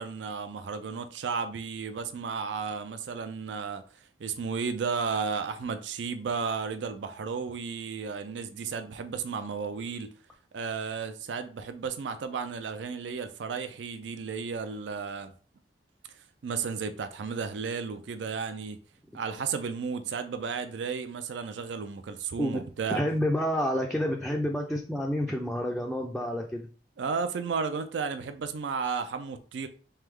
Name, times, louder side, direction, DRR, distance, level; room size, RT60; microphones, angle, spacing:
voice 1, 0.0-3.8 4.2-10.1 10.5-15.3 16.4-18.8 19.1-23.0 27.0-29.7, right 5 dB, 75° right, 0.4 m, -33 dB
voice 2, 22.9-26.7, equal, 5° left, 0.3 m, -29 dB
3.3 x 3.3 x 3.5 m
head